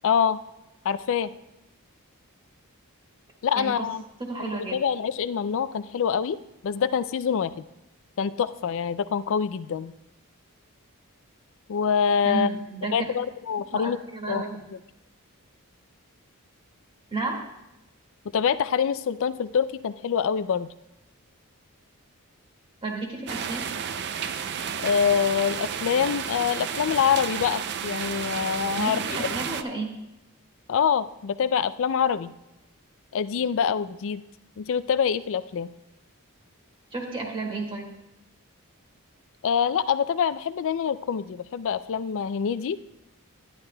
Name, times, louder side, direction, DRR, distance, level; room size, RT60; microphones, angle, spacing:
voice 1, 0.0-0.4 0.8-1.3 3.4-4.0 4.4-6.4 6.6-7.5 8.2-9.9 11.7-12.5 12.9-14.0 14.3-14.5 18.3-20.7 24.8-29.4 30.7-32.3 33.1-34.2 34.6-35.7 39.4-42.8, left 7 dB, 60° left, 15 dB, 0.4 m, -25 dB
voice 2, 3.5-3.9 4.2-4.7 12.2-13.1 13.7-14.6 17.1-17.4 22.8-23.7 28.7-29.9 36.9-37.9, right 3 dB, 25° right, -1 dB, 1.7 m, -32 dB
sound 1, 23.3-29.6, right 7 dB, 50° right, 0.4 m, -32 dB
11.0 x 10.5 x 2.2 m, 0.91 s
head